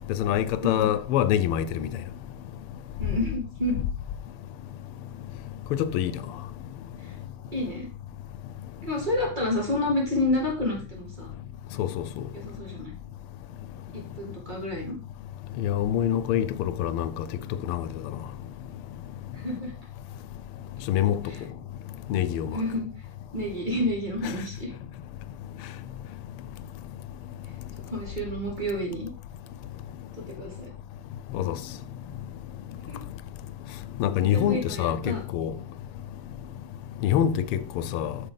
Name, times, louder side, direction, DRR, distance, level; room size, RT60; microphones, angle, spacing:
voice 1, 0.1-1.9 5.8-6.1 11.8-12.2 15.6-17.2 17.7-17.9 20.9-21.2 22.1-22.5 31.3-31.5 34.0-35.5 37.0-37.6 37.9-38.1, left 10 dB, 85° left, 1.5 m, -25 dB
voice 2, 3.0-3.8 7.0-7.1 7.5-7.9 8.8-11.3 12.3-12.9 14.2-15.0 19.3-19.7 22.5-22.9 23.3-24.7 27.9-29.1 30.4-30.7 32.9-33.0 34.2-35.2, left 1 dB, 20° right, 2.4 m, -29 dB
8.2 x 6.5 x 3.9 m
omnidirectional pair, 2.4 m